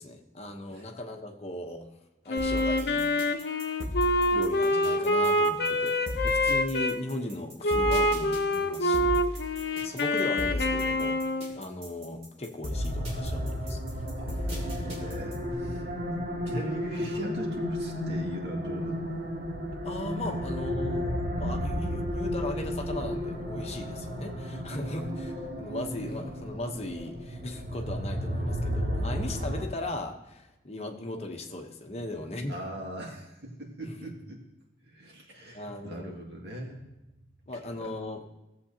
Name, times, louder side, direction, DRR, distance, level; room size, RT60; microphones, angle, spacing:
voice 1, 0.0-1.9 2.2-3.3 4.3-11.2 11.5-14.1 19.8-32.6 33.8-34.1 35.5-36.2 37.5-38.2, left 1 dB, 35° left, 3 dB, 0.9 m, -38 dB
Wind instrument woodwind instrument, 2.3-7.0 7.6-11.6, left 1 dB, 65° left, 0.7 m, -26 dB
sound 1, 2.4-15.5, left 1 dB, 40° right, 2.6 m, -35 dB
sound 2, 12.7-29.6, equal, 55° right, 2.1 m, -33 dB
voice 2, 14.2-15.9 16.5-19.1 20.2-20.3 32.5-34.4 34.9-36.8 37.5-37.9, equal, 80° right, -1 dB, 2.0 m, -40 dB
17.0 x 7.5 x 2.8 m, 0.96 s
head